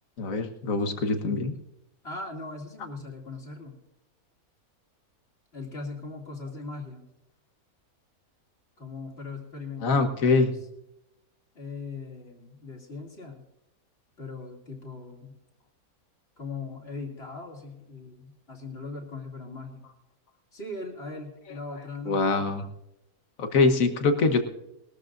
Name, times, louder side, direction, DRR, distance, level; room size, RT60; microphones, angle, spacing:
voice 1, 0.2-1.5 9.8-10.5 22.1-22.6 23.4-24.4, left 3 dB, 65° left, 7 dB, 1.6 m, -23 dB
voice 2, 0.8-1.5 2.0-3.8 5.5-7.1 8.8-10.6 11.5-13.4 14.2-15.4 16.4-19.9 20.5-22.3, left 3 dB, 40° left, 1 dB, 2.8 m, -40 dB
20.5 x 13.5 x 2.6 m, 0.86 s
omnidirectional pair, 1.6 m